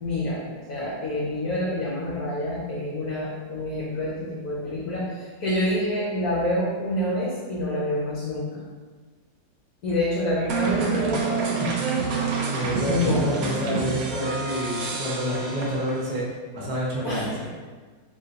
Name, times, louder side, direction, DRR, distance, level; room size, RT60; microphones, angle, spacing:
voice 1, 0.0-8.6 9.8-11.6 12.9-13.3 17.0-17.5, left 1 dB, 60° left, -7 dB, 1.1 m, -27 dB
sound 1, 10.5-16.2, right 4 dB, 75° right, 0.8 m, -28 dB
voice 2, 12.5-16.3 16.5-17.5, equal, 35° right, -6 dB, 0.7 m, -28 dB
3.8 x 3.6 x 2.8 m, 1.4 s
omnidirectional pair, 2.1 m